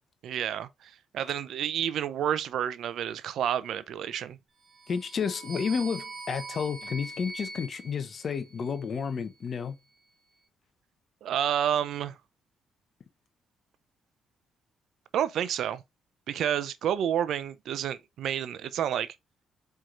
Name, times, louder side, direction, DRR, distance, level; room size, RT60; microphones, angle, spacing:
voice 1, 0.2-4.4 11.2-12.2 15.1-15.8 16.3-19.2, right 10 dB, 75° right, 0.5 m, -30 dB
sound 1, 4.7-9.0, right 3 dB, 35° right, 1.4 m, -43 dB
voice 2, 4.9-9.8, left 6 dB, 50° left, 0.9 m, -31 dB
4.6 x 4.5 x 2.4 m
cardioid pair, 90°, 0 cm